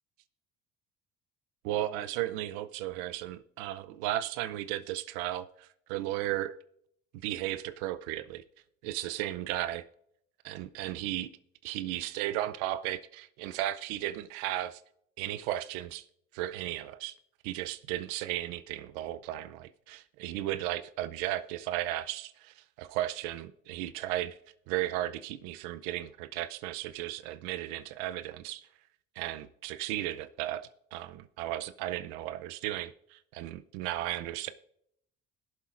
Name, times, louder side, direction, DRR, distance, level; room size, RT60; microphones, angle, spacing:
voice 1, 1.6-6.6 7.2-8.4 8.8-9.9 10.4-11.3 11.6-14.8 15.2-16.0 16.3-17.2 17.4-24.4 24.7-28.7 29.2-34.5, right 14 dB, 90° right, 14 dB, 0.6 m, -35 dB
21.0 x 7.4 x 2.5 m, 0.72 s
supercardioid pair, 85°, 34 cm